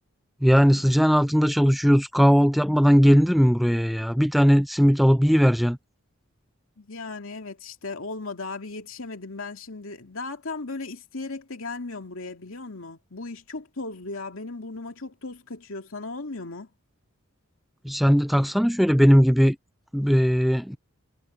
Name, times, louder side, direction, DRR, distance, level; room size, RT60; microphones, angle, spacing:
voice 1, 0.4-5.8 17.8-19.6 19.9-20.8, equal, ahead, 0.4 m, -19 dB
voice 2, 6.8-16.7, left 3 dB, 70° left, 2.5 m, -36 dB
head